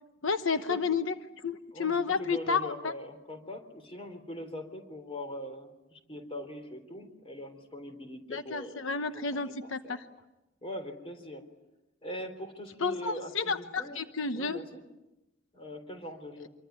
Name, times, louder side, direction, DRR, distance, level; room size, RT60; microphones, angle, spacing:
voice 1, 0.2-1.1 1.4-2.9 8.3-10.1 12.8-14.6, left 5 dB, 80° left, 9 dB, 1.0 m, -31 dB
voice 2, 1.7-8.8 9.1-10.0 10.6-11.5 12.0-14.0 14.3-14.8 15.5-16.5, left 1 dB, 30° left, 7 dB, 3.7 m, -42 dB
26.5 x 24.0 x 9.4 m, 0.98 s
head